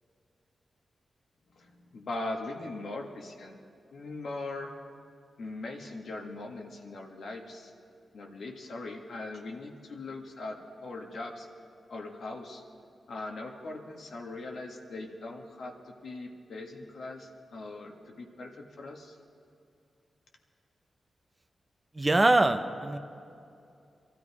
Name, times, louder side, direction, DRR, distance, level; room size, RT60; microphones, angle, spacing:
voice 1, 1.5-3.6 3.9-4.7 5.4-7.7 8.1-11.5 11.9-12.6 13.1-19.2, left 2 dB, 75° left, 1 dB, 1.7 m, -40 dB
voice 2, 21.9-23.0, right 2 dB, 25° right, 8 dB, 1.0 m, -23 dB
23.0 x 13.0 x 4.9 m, 2.5 s
cardioid pair, 55°, 0 cm